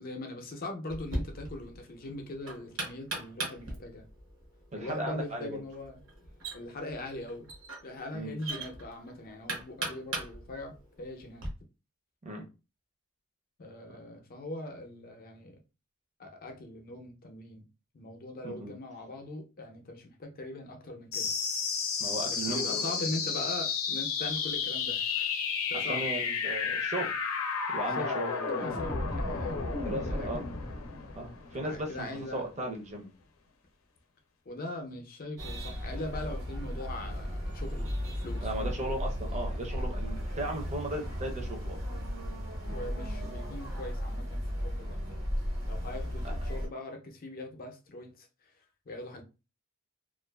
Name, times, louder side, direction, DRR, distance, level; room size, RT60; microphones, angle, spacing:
voice 1, 0.0-4.0 4.8-6.0 6.5-7.5 7.8-11.5 13.6-15.5 16.2-17.6 17.9-21.3 22.3-25.3 25.7-26.0 27.9-30.3 31.5-32.4 34.5-38.5 42.7-45.0 45.7-48.3 48.9-49.2, left 1 dB, 45° left, 0.6 m, -41 dB
Knock, 0.9-11.5, right 2 dB, 65° right, 0.8 m, -40 dB
voice 2, 4.7-5.6 8.1-8.3 12.2-12.5 18.4-18.7 22.0-22.9 25.7-27.1 27.7-28.3 29.8-30.4 31.2-33.1 38.4-41.8 46.2-46.3, right 1 dB, 35° right, 0.6 m, -36 dB
sound 1, 21.1-32.1, left 5 dB, 85° left, 0.6 m, -32 dB
sound 2, 35.4-46.7, equal, 85° right, 1.2 m, -35 dB
2.4 x 2.3 x 2.2 m
head